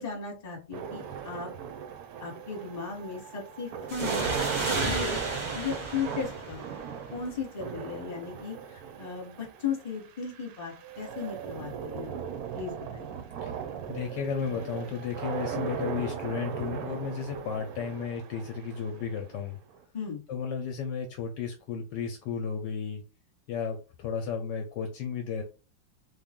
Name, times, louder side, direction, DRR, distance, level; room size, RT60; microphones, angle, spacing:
voice 1, 0.0-1.5 2.2-4.3 4.6-5.2 5.5-6.6 7.1-12.2 12.5-13.2 19.9-20.2, left 5 dB, 25° left, 0 dB, 1.1 m, -36 dB
sound 1, 0.7-19.8, right 8 dB, 70° right, 0.9 m, -37 dB
sound 2, 3.9-7.3, right 2 dB, 55° right, 0.3 m, -33 dB
voice 2, 13.9-19.6 20.3-23.0 23.5-25.4, left 6 dB, 75° left, 4 dB, 1.1 m, -33 dB
3.6 x 2.4 x 3.5 m, 0.34 s
omnidirectional pair, 2.1 m